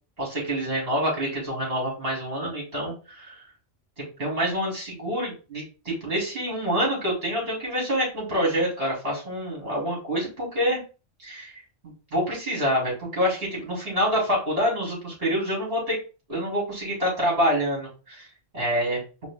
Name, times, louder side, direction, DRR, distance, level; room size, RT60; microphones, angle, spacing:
voice 1, 0.2-3.4 4.0-10.8 11.2-16.0 16.3-18.3 18.5-19.0, equal, 60° right, -4 dB, 3.2 m, -27 dB
5.1 x 2.7 x 3.6 m, 0.33 s
omnidirectional pair, 1.2 m